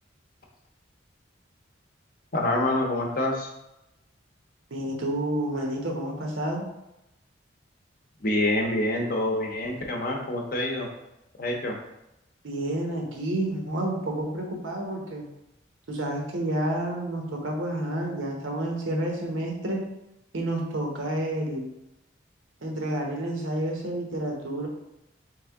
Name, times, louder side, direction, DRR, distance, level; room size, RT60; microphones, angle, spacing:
voice 1, 2.3-3.5 8.2-10.9 11.4-11.7, left 1 dB, 45° left, 1 dB, 0.7 m, -26 dB
voice 2, 4.7-6.7 12.4-15.2 15.9-19.8 20.3-21.7 22.6-24.7, right 1 dB, 90° right, 0 dB, 0.9 m, -29 dB
3.5 x 3.3 x 3.5 m, 0.90 s
head